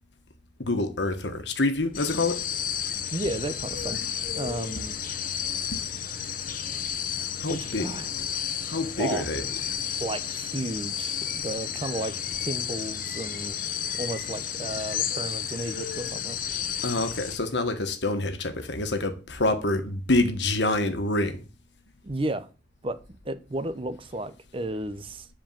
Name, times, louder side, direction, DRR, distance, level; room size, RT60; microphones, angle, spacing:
voice 1, 0.6-2.5 3.9-4.1 4.7-4.8 5.7-5.8 7.4-7.9 8.6-9.5 16.8-21.4, left 2 dB, 70° left, 1.5 m, -27 dB
sound 1, 1.9-17.4, left 8 dB, 50° left, 1.0 m, -32 dB
voice 2, 3.1-4.0 4.4-5.0 7.5-8.1 9.0-9.2 10.0-13.6 14.0-16.4 22.0-22.5 22.8-25.3, right 1 dB, 30° right, 0.7 m, -33 dB
10.0 x 4.6 x 7.4 m
head